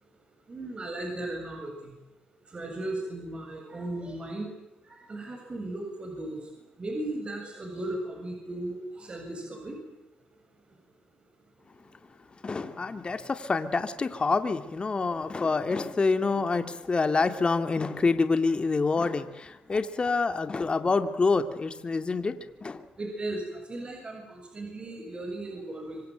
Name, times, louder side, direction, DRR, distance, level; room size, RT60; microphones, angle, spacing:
voice 1, 0.5-1.9 2.5-4.5 4.8-6.4 6.8-9.8 23.0-26.0, right 1 dB, 35° right, 3 dB, 7.5 m, -36 dB
voice 2, 12.4-22.3 22.6-22.8, left 4 dB, 35° left, 9 dB, 2.7 m, -27 dB
25.5 x 25.5 x 9.2 m, 0.93 s
supercardioid pair, 60°, 3 cm